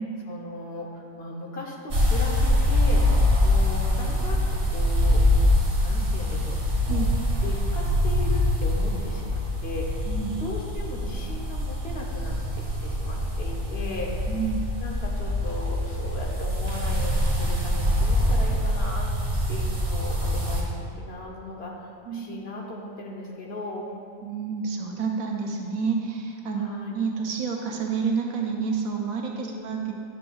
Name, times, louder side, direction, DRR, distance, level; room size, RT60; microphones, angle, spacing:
voice 1, 0.3-3.0 3.4-5.2 5.8-7.1 7.4-10.1 10.3-14.2 14.8-19.1 19.5-23.9 26.6-27.0 29.4-29.7, left 2 dB, 50° left, -1 dB, 1.0 m, -37 dB
sound 1, 1.9-20.6, left 1 dB, 50° right, 1.7 m, -24 dB
voice 2, 10.1-10.4 14.3-14.6 22.1-22.3 24.2-29.9, right 5 dB, 75° right, 1 dB, 1.1 m, -29 dB
9.6 x 6.9 x 2.3 m, 2.3 s
omnidirectional pair, 1.5 m